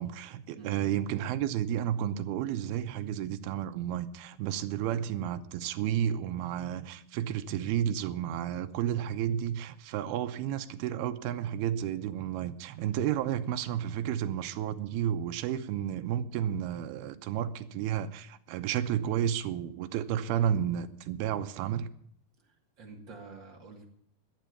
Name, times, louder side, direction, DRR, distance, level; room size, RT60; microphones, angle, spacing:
voice 1, 0.0-21.9, right 10 dB, 85° right, 2.8 m, -32 dB
voice 2, 0.6-0.9 22.4-24.0, right 4 dB, 35° right, 2.6 m, -48 dB
12.0 x 9.2 x 9.4 m
omnidirectional pair, 4.4 m